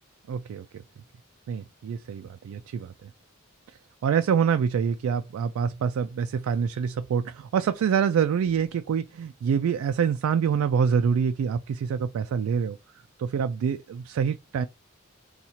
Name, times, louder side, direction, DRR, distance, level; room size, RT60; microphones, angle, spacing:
voice 1, 0.3-0.8 1.5-3.1 4.0-12.8 13.2-14.6, right 7 dB, 90° right, 0.3 m, -26 dB
2.8 x 2.4 x 4.2 m
head